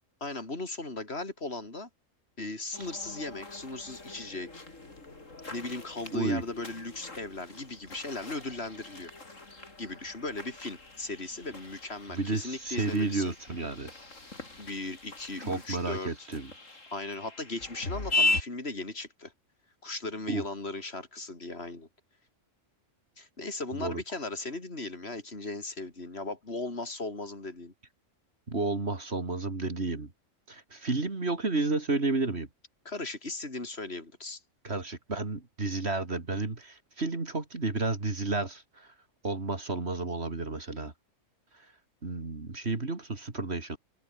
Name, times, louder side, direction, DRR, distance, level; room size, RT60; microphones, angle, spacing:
voice 1, 0.2-1.9 2.4-4.6 5.5-9.1 9.8-13.3 14.6-16.3 16.9-19.3 19.8-21.9 23.2-27.7 32.8-34.4, left 2 dB, 50° left, 4.6 m, -37 dB
sound 1, 2.7-18.4, left 2 dB, 75° left, 4.6 m, -38 dB
voice 2, 6.1-6.4 12.1-13.9 15.4-16.5 20.3-20.5 23.7-24.0 28.5-30.1 30.5-32.5 34.6-38.9 39.2-40.9 42.0-43.8, right 3 dB, 55° right, 3.0 m, -31 dB
omnidirectional pair, 1.4 m